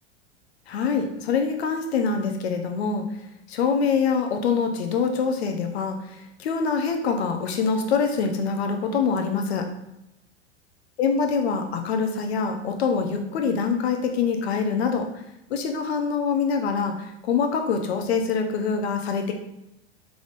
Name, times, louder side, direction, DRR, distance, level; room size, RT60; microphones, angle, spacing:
voice 1, 0.7-3.0 3.5-6.0 6.4-9.7 11.0-15.1 15.5-19.3, left 5 dB, 60° left, 5 dB, 0.8 m, -24 dB
4.9 x 3.6 x 2.5 m, 0.85 s
figure-of-eight pair, 90°, 36 cm